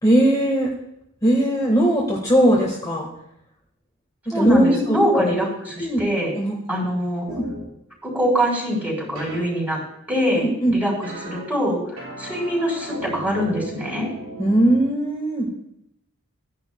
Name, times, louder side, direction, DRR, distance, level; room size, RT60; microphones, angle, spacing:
voice 1, 0.0-0.7 1.2-3.1 4.3-5.3 5.8-6.0 6.4-6.5 7.3-7.5 10.4-10.7 14.4-15.5, right 1 dB, 20° left, -3 dB, 1.5 m, -19 dB
voice 2, 4.3-6.3 6.7-7.3 8.1-9.8 10.1-14.1, equal, 10° right, -3 dB, 4.0 m, -23 dB
sound 1, 7.3-7.6 9.1-9.4 11.0-11.4 12.0-14.8, right 1 dB, 90° right, 4.5 m, -36 dB
16.5 x 10.5 x 2.2 m, 0.78 s
head